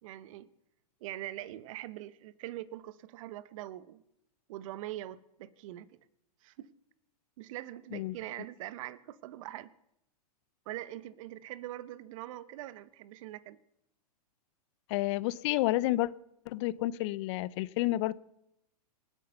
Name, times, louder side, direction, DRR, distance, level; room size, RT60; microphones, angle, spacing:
voice 1, 0.0-0.5 1.0-4.0 4.5-5.9 6.4-6.7 7.4-9.7 10.7-13.6, right 14 dB, 55° right, 1.0 m, -43 dB
voice 2, 14.9-16.1 16.5-18.1, left 17 dB, 45° left, 0.7 m, -30 dB
27.0 x 9.2 x 5.6 m
hypercardioid pair, 120°, 21 cm